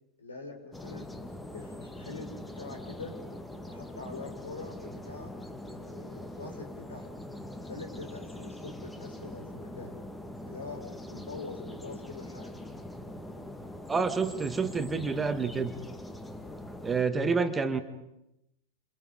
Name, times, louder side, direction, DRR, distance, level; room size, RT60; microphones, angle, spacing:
voice 1, 0.2-1.1 1.5-3.1 3.6-5.3 5.7-7.1 7.7-10.0 10.5-12.6, left 3 dB, 75° left, 3 dB, 5.1 m, -44 dB
sound 1, 0.7-17.0, left 1 dB, 5° left, 2.0 m, -43 dB
voice 2, 13.9-15.7 16.8-17.8, right 4 dB, 15° right, 9 dB, 1.9 m, -28 dB
29.0 x 27.5 x 5.3 m, 0.86 s
figure-of-eight pair, 90°, 0 cm